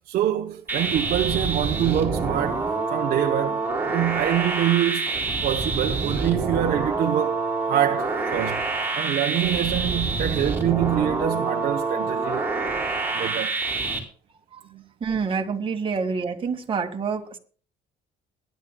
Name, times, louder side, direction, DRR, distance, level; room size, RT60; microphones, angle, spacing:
voice 1, 0.1-2.6 2.9-5.1 5.4-7.4 7.7-8.7 8.9-12.5 13.1-13.6 14.7-14.8, right 12 dB, 65° right, 0.9 m, -25 dB
sound 1, 0.7-14.0, right 3 dB, 10° right, 3.7 m, -27 dB
voice 2, 15.0-17.4, right 5 dB, 30° right, 1.8 m, -27 dB
22.0 x 10.5 x 2.3 m
cardioid pair, 110°, 17 cm